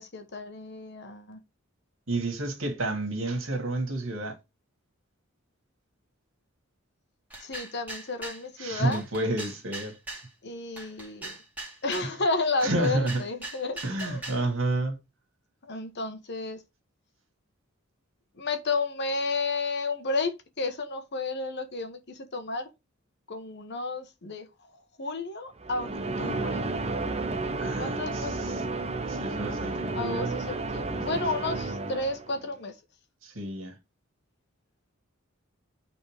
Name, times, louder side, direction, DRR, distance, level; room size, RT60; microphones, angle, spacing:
voice 1, 0.0-1.4 7.4-9.0 10.4-11.4 11.8-14.2 15.7-16.6 18.3-22.7 23.3-24.7 25.0-25.9 26.2-26.7 27.8-28.7 29.9-32.8, left 3 dB, 55° left, 1.3 m, -32 dB
voice 2, 2.1-4.4 8.6-9.9 12.6-13.2 13.8-15.0 27.6-28.6 29.1-30.4 30.8-31.0 31.5-31.7 33.2-33.7, right 2 dB, 70° right, 2.4 m, -30 dB
sound 1, 7.3-8.4 8.9-10.3 10.8-12.1 12.6-14.5, right 2 dB, 10° right, 2.1 m, -40 dB
sound 2, 25.6-32.5, right 3 dB, 30° right, 0.8 m, -32 dB
8.4 x 4.1 x 3.5 m
head